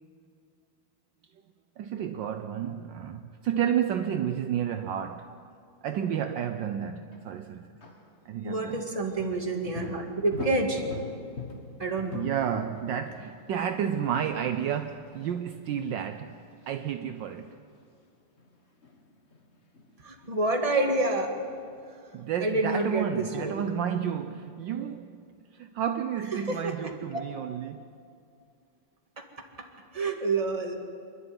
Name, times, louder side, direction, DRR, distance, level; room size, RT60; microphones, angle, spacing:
voice 1, 1.8-5.3 5.8-7.8 8.2-8.9 12.1-16.4 16.7-17.5 22.1-25.2 25.5-27.8, right 9 dB, 70° right, 1.3 m, -31 dB
sound 1, 7.1-7.2 7.8-8.1 9.2-15.4 15.6-15.8 16.3-16.4 16.7-17.0 17.2-17.5 18.4-20.9 21.2-21.9, left 3 dB, 35° left, 1.8 m, -42 dB
voice 2, 8.4-10.8 11.8-12.3 20.0-21.3 22.4-23.6 26.3-26.9 29.2-29.3 29.9-30.8, right 2 dB, 15° right, 2.0 m, -28 dB
26.0 x 11.5 x 9.6 m
omnidirectional pair, 2.2 m